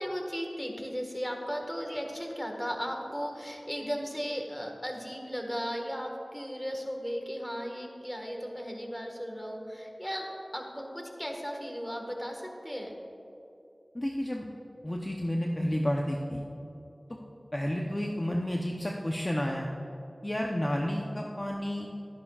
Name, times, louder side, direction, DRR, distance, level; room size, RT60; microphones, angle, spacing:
voice 1, 0.0-12.9, equal, 10° left, 2 dB, 1.5 m, -36 dB
voice 2, 13.9-14.5 14.8-16.4 17.1-17.2 17.5-19.7 20.2-21.9, equal, 30° left, 0 dB, 0.7 m, -31 dB
12.5 x 11.0 x 2.4 m, 2.8 s
wide cardioid pair, 40°, 0 cm